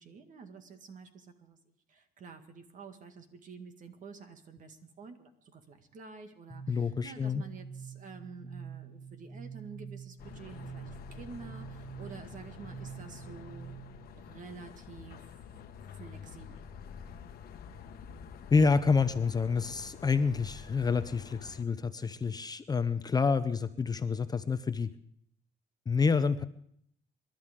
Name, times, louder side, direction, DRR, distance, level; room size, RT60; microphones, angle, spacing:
voice 1, 0.0-13.7 14.2-15.3 15.9-16.6, right 5 dB, 50° right, 7 dB, 1.9 m, -49 dB
sound 1, 6.5-14.1, right 6 dB, 5° left, 1.7 m, -46 dB
voice 2, 6.7-7.4 18.5-24.9 25.9-26.4, left 5 dB, 25° left, 11 dB, 0.6 m, -28 dB
sound 2, 10.2-21.6, left 7 dB, 65° left, 1.2 m, -48 dB
27.0 x 11.5 x 3.7 m, 0.68 s
cardioid pair, 110°, 17 cm